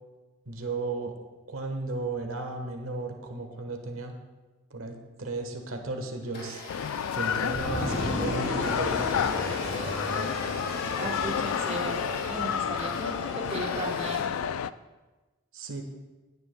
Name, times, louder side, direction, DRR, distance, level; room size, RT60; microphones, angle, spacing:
voice 1, 0.5-1.1 1.5-4.1 4.7-6.6 7.1-9.1 15.5-15.8, right 3 dB, 90° right, 4 dB, 1.2 m, -34 dB
Domestic sounds home sounds, 6.2-14.2, left 2 dB, 50° left, 2.5 m, -44 dB
sound 1, 6.7-14.7, left 8 dB, 80° left, 0.3 m, -30 dB
sound 2, 7.5-14.1, left 1 dB, 65° left, 2.8 m, -34 dB
voice 2, 11.0-14.3, right 1 dB, 30° right, 1 dB, 1.0 m, -36 dB
16.5 x 9.7 x 2.2 m, 1.2 s
head